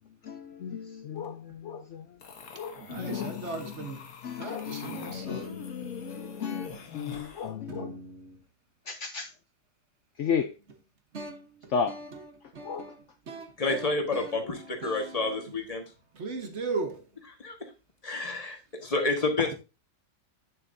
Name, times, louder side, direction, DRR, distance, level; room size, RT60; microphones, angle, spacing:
voice 1, 0.2-2.2 2.5-3.7 4.2-8.0 8.9-9.3 10.2-10.5 11.7-12.0 12.6-12.9 14.4-14.5, left 6 dB, 85° left, 0.6 m, -34 dB
sound 1, 2.2-7.5, left 6 dB, 55° left, 1.5 m, -43 dB
voice 2, 2.8-4.1 4.4-6.0 6.7-6.8 7.7-8.4 11.1-15.6 16.1-17.1, right 3 dB, 45° right, 1.1 m, -39 dB
voice 3, 13.6-15.8 17.4-17.6 18.0-19.5, left 3 dB, 20° left, 1.3 m, -29 dB
9.1 x 6.9 x 2.6 m
omnidirectional pair, 1.9 m